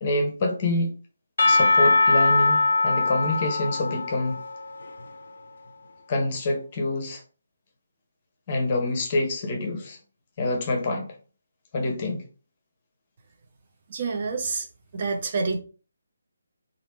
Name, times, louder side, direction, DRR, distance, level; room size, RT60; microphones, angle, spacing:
voice 1, 0.0-1.0 1.5-4.4 6.1-7.2 8.5-10.0 10.4-11.2 11.7-12.2, left 2 dB, 30° left, 0.8 m, -26 dB
Percussion / Church bell, 1.4-5.4, left 3 dB, 50° left, 0.4 m, -22 dB
voice 2, 13.9-14.7 14.9-15.6, right 4 dB, 35° right, 0.5 m, -27 dB
3.1 x 2.5 x 3.1 m
figure-of-eight pair, 145°, 0 cm